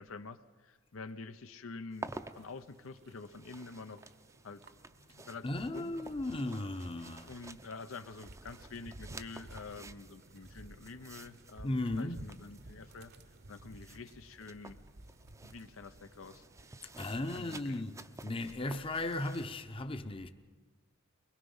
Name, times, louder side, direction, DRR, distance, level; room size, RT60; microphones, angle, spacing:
voice 1, 0.0-4.0 4.4-4.6 5.2-5.9 7.3-13.1 13.5-14.8 15.4-16.4 17.3-17.8, left 3 dB, 85° left, 0.7 m, -47 dB
sound 1, 1.9-19.6, right 2 dB, 15° right, 0.5 m, -52 dB
sound 2, 2.1-17.6, right 1 dB, 55° right, 0.9 m, -55 dB
voice 2, 5.4-7.4 11.6-12.3 17.0-18.0 18.2-20.3, left 2 dB, 25° left, 0.7 m, -36 dB
23.5 x 21.0 x 5.5 m
head